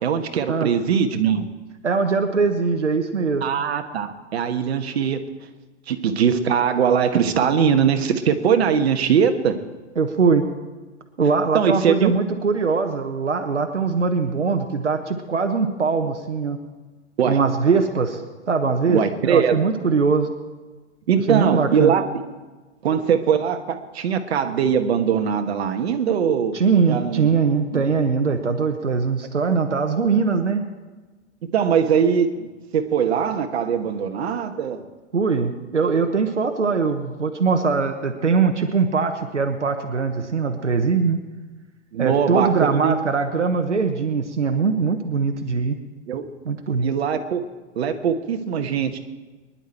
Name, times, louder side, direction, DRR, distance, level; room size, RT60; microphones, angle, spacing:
voice 1, 0.0-1.5 3.4-5.2 5.9-9.5 11.5-12.1 17.2-17.4 18.9-19.7 21.1-22.2 22.8-26.6 26.9-27.3 27.7-27.8 31.5-34.8 41.9-42.9 46.1-46.2 46.8-47.4 47.7-49.0, right 7 dB, 60° right, 6 dB, 1.5 m, -21 dB
voice 2, 1.8-3.5 10.0-10.5 11.2-16.6 17.2-18.2 18.5-20.3 21.3-21.9 26.5-30.6 35.1-41.2 42.0-45.8 46.4-46.9, right 5 dB, 80° right, 5 dB, 1.4 m, -21 dB
24.0 x 11.0 x 4.5 m, 1.3 s
figure-of-eight pair, 110°, 35 cm